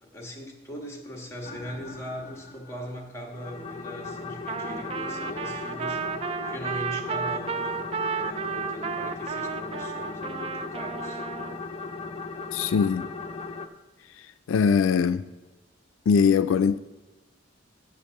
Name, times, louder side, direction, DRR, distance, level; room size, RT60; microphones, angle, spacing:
voice 1, 0.0-7.8 8.1-11.2, equal, 15° left, 1.6 m, -40 dB
sound 1, 1.4-2.9 3.3-13.7, left 4 dB, 30° left, 0.6 m, -37 dB
Trumpet, 4.5-11.6, right 6 dB, 30° right, 0.3 m, -32 dB
voice 2, 12.5-13.1 14.2-15.2 16.1-16.8, left 6 dB, 85° left, 0.3 m, -22 dB
7.3 x 7.1 x 6.5 m
head